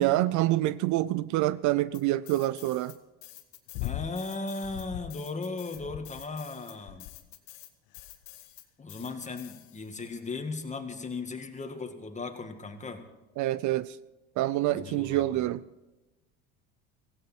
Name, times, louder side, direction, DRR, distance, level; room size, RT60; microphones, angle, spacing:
voice 1, 0.0-2.9 13.4-14.0 14.4-15.6, right 15 dB, 55° right, 0.5 m, -26 dB
sound 1, 1.9-3.0 3.2-10.0, left 16 dB, 80° left, 1.7 m, -50 dB
sound 2, 3.7-4.2 4.6-5.2 5.7-6.4 6.9-7.3 8.0-8.3 9.0-9.4 10.3-10.4, left 20 dB, 65° left, 0.5 m, -39 dB
voice 2, 3.8-7.1 8.8-13.0 14.7-15.5, left 3 dB, 20° left, 2.1 m, -37 dB
16.5 x 16.0 x 4.5 m
supercardioid pair, 90°, 35 cm